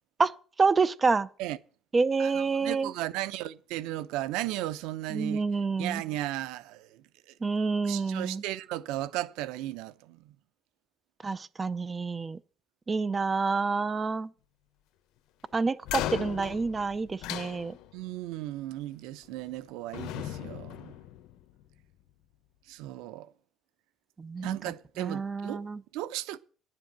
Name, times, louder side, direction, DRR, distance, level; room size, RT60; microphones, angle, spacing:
voice 1, 0.6-1.3 1.9-2.9 5.1-6.0 7.4-8.4 11.2-12.4 12.9-14.3 15.5-17.8 24.2-24.6 25.0-25.8, right 4 dB, 20° right, 0.6 m, -28 dB
voice 2, 2.2-5.4 5.8-7.0 7.8-10.3 17.9-20.9 22.7-23.3 24.4-25.6 25.9-26.4, right 15 dB, 90° right, 0.7 m, -35 dB
sound 1, 15.8-18.1 19.2-19.6 19.9-21.7, left 13 dB, 75° left, 1.0 m, -37 dB
10.5 x 7.7 x 7.5 m
cardioid pair, 135°, 0 cm